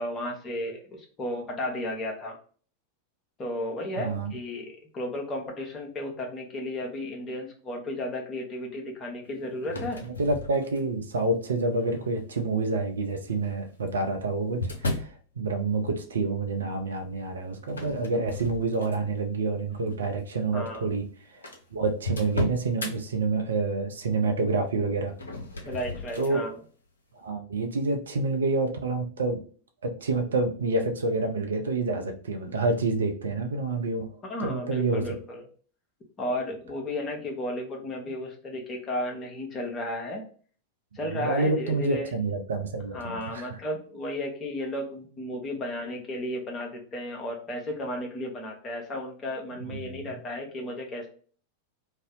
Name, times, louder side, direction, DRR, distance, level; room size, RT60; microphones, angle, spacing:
voice 1, 0.0-2.4 3.4-10.0 20.5-20.9 25.6-26.6 34.2-35.5 36.2-40.2 40.9-42.1 42.9-51.1, left 1 dB, 25° left, 1 dB, 0.9 m, -34 dB
voice 2, 4.0-4.3 10.2-21.0 21.3-21.4 21.7-25.1 26.2-26.4 27.2-29.4 29.8-34.1 34.4-35.0 41.1-43.6 49.7-50.0, right 3 dB, 70° right, 5 dB, 0.5 m, -28 dB
sound 1, 9.6-11.1 11.8-12.2 13.3-15.2 17.7-19.2 19.7-20.0 20.7-20.8 21.0-21.1 21.4-22.9 25.1-26.4, left 2 dB, 70° left, 0.5 m, -35 dB
2.6 x 2.0 x 3.6 m, 0.42 s
figure-of-eight pair, 90°, 0 cm